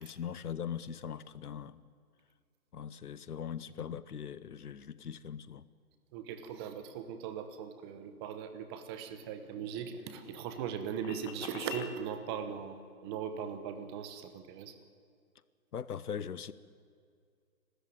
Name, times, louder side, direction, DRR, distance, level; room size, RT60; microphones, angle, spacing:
voice 1, 0.0-1.9 2.7-5.7 15.7-16.5, left 8 dB, 85° left, 1.1 m, -40 dB
voice 2, 6.1-14.7, right 8 dB, 15° right, 1.0 m, -39 dB
sound 1, 8.9-12.0, left 8 dB, 30° left, 1.5 m, -47 dB
29.5 x 13.5 x 9.4 m
hypercardioid pair, 155°, 45 cm